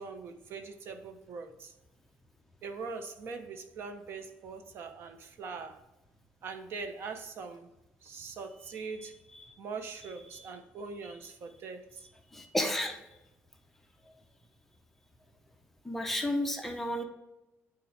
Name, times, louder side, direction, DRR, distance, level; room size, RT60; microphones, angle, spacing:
voice 1, 0.0-1.7 2.6-5.8 6.4-7.7 8.0-9.1 9.6-12.1, right 4 dB, 55° right, 7 dB, 0.8 m, -42 dB
voice 2, 12.3-13.0 15.8-17.0, left 1 dB, 5° left, 3 dB, 0.7 m, -32 dB
8.8 x 3.9 x 3.3 m, 0.94 s
cardioid pair, 145°, 5 cm